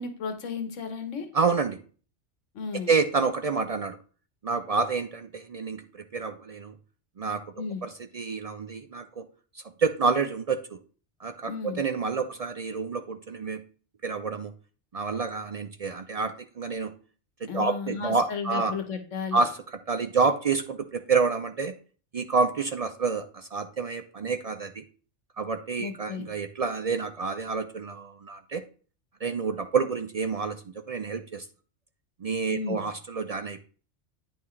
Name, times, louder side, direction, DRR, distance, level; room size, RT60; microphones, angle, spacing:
voice 1, 0.0-1.3 2.5-3.0 7.6-7.8 11.5-11.8 17.5-19.4 25.8-26.3 32.5-32.8, left 5 dB, 90° left, 8 dB, 1.4 m, -34 dB
voice 2, 1.3-1.8 2.7-4.0 4.4-5.8 6.1-6.7 7.2-7.4 7.8-9.3 9.8-10.8 11.2-13.6 14.0-14.5 14.9-16.9 17.4-18.7 19.3-19.6 19.9-21.7 22.1-24.8 25.4-28.6 29.2-30.6 30.9-31.5 32.2-33.6, right 4 dB, 60° right, 9 dB, 0.4 m, -28 dB
9.2 x 5.8 x 3.2 m, 0.40 s
omnidirectional pair, 1.2 m